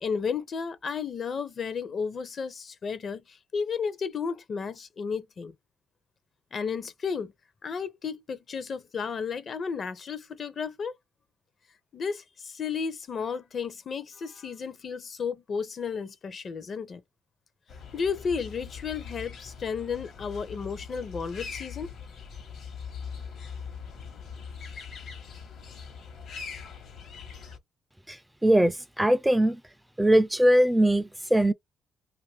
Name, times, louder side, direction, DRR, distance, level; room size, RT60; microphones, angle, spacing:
voice 1, 0.0-5.5 6.5-7.3 7.6-10.9 11.9-17.0 17.9-21.9, left 6 dB, 50° left, 0.6 m, -33 dB
sound 1, 17.7-27.6, left 6 dB, 65° left, 1.0 m, -41 dB
voice 2, 28.1-29.6 30.0-31.5, right 1 dB, 5° right, 0.3 m, -21 dB
2.6 x 2.5 x 3.3 m
cardioid pair, 90°, 0 cm